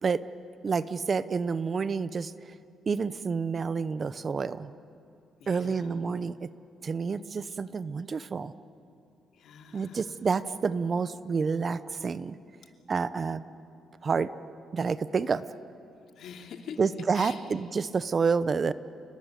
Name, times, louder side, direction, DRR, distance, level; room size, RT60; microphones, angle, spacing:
voice 1, 0.6-2.3 2.9-4.7 5.5-6.5 6.8-8.5 9.7-12.4 12.9-13.4 14.0-14.3 14.7-15.4 16.8-18.7, right 5 dB, 40° right, 15 dB, 0.8 m, -29 dB
voice 2, 5.4-6.0 9.3-10.1 16.2-16.8 17.1-17.4, left 7 dB, 70° left, 4 dB, 2.8 m, -44 dB
30.0 x 19.0 x 9.3 m, 2.7 s
cardioid pair, 90°, 0 cm